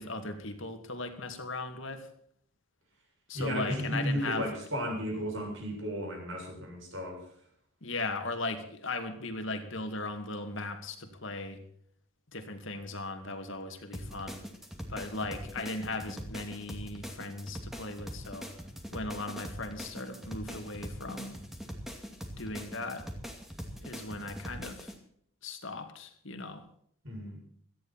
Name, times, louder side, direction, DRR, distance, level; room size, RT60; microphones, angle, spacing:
voice 1, 0.0-2.1 3.3-4.4 7.8-11.6 12.3-14.4 14.9-18.5 18.9-21.4 22.4-23.0 23.8-24.9 25.4-26.6, left 2 dB, 60° left, 6 dB, 2.5 m, -38 dB
voice 2, 3.3-7.2 27.0-27.4, equal, 60° right, 1 dB, 7.2 m, -34 dB
sound 1, 13.9-25.0, equal, ahead, 2.3 m, -42 dB
17.5 x 14.0 x 4.4 m, 0.65 s
head